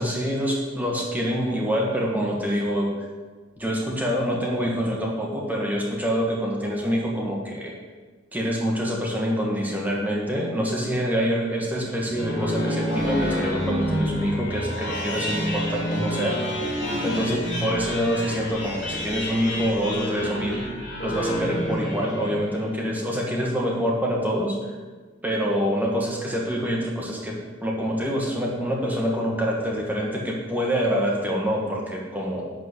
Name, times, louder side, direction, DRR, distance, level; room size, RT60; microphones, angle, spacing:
voice 1, 0.0-2.9 3.6-7.8 8.3-16.4 17.0-20.7 21.0-24.6 25.2-32.5, equal, 10° right, -2 dB, 1.8 m, -26 dB
sound 1, 11.9-22.7, equal, 65° left, 3.3 m, -28 dB
11.5 x 4.5 x 8.1 m, 1.3 s
head